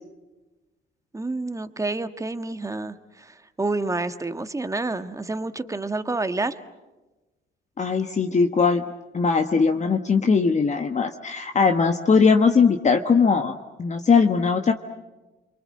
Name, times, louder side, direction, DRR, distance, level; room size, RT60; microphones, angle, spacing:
voice 1, 1.1-6.5, right 2 dB, 15° right, 10 dB, 1.4 m, -29 dB
voice 2, 7.8-8.8 9.1-14.7, left 5 dB, 35° left, 5 dB, 1.3 m, -20 dB
29.5 x 23.5 x 7.7 m, 1.1 s
cardioid pair, 90°, 20 cm